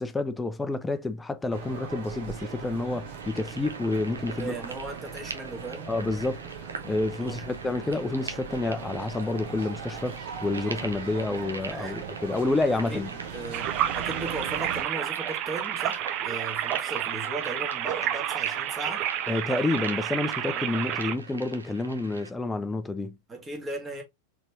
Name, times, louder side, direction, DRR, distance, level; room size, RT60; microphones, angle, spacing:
voice 1, 0.0-4.6 5.9-6.4 6.8-13.1 19.3-23.2, left 2 dB, 10° left, 0.5 m, -29 dB
sound 1, 1.5-14.8, right 6 dB, 55° right, 1.1 m, -39 dB
sound 2, 3.2-22.3, right 4 dB, 75° right, 0.7 m, -44 dB
voice 2, 4.4-5.9 7.2-7.4 11.7-11.9 12.9-13.0 13.3-19.0 20.5-20.7 23.3-24.0, right 2 dB, 15° right, 1.5 m, -37 dB
sound 3, 13.5-21.2, right 11 dB, 40° right, 0.5 m, -30 dB
4.1 x 3.4 x 3.0 m
figure-of-eight pair, 90°, 0 cm